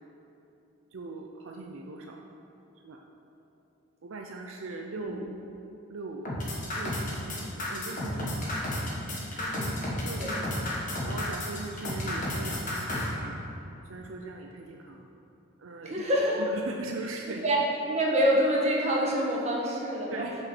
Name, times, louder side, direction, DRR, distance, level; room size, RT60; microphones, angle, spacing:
voice 1, 0.9-2.2 2.8-3.0 4.0-5.4 5.9-6.3 6.7-8.3 10.0-10.7 11.0-13.4 13.9-15.1 15.6-16.0 16.4-17.4 20.1-20.4, right 3 dB, 70° right, 2 dB, 0.5 m, -40 dB
sound 1, 6.2-13.1, left 1 dB, 40° left, 1.4 m, -32 dB
voice 2, 9.4-9.7 10.2-10.4 15.8-16.4 17.4-17.6 17.9-20.3, equal, 30° right, -3 dB, 1.3 m, -26 dB
6.2 x 6.1 x 6.1 m, 2.9 s
head